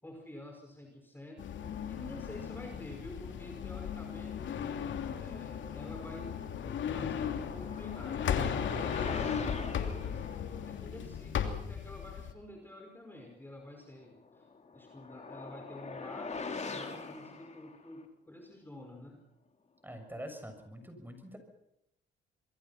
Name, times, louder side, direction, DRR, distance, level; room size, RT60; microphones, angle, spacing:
voice 1, 0.0-1.4 1.8-6.5 6.9-10.3 10.6-19.2, left 1 dB, 10° left, 2 dB, 5.1 m, -49 dB
sound 1, 1.4-12.3, left 8 dB, 70° left, 2.9 m, -36 dB
sound 2, 7.3-10.3 14.2-18.0, left 4 dB, 35° left, 3.9 m, -42 dB
voice 2, 19.8-21.4, equal, 10° right, 6 dB, 7.1 m, -45 dB
27.0 x 22.0 x 5.8 m, 0.78 s
cardioid pair, 90°, 20 cm